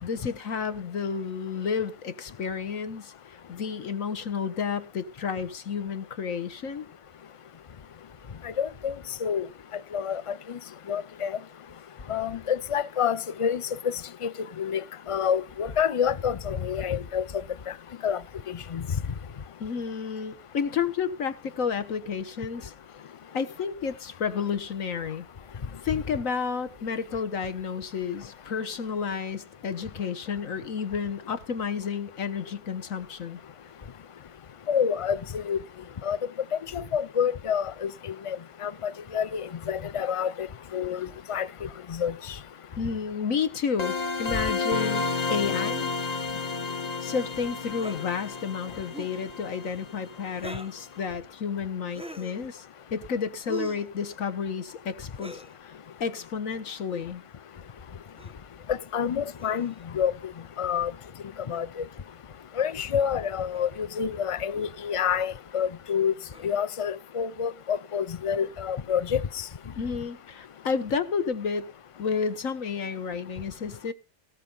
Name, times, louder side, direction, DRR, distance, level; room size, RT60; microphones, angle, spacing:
voice 1, 0.0-3.1 3.5-6.9 19.6-22.7 23.3-25.2 25.8-33.4 42.8-45.9 47.0-52.6 52.9-55.7 56.0-57.2 69.8-71.7 72.0-73.9, left 6 dB, 70° left, 1.6 m, -31 dB
voice 2, 8.4-8.9 9.2-9.5 9.9-10.6 10.9-11.4 12.1-14.3 14.6-14.8 15.1-17.2 18.0-18.2 18.5-18.8 34.7-35.6 36.0-36.2 36.7-38.4 38.6-40.5 40.7-41.5 41.9-42.1 58.7-60.1 60.6-60.9 61.5-61.8 62.6-66.1 66.4-69.2, left 8 dB, 50° left, 0.4 m, -28 dB
sound 1, 43.8-50.5, left 4 dB, 30° left, 1.1 m, -31 dB
sound 2, 47.7-48.0 48.8-49.2 50.3-50.8 51.9-52.4 53.5-53.9 55.1-55.5 56.8-57.1 58.2-58.4 59.4-59.8 61.5-61.6 62.7-62.8 63.5-63.7 64.5-64.7 66.3-66.7, right 1 dB, 5° right, 0.7 m, -42 dB
18.0 x 6.0 x 5.4 m
omnidirectional pair, 1.4 m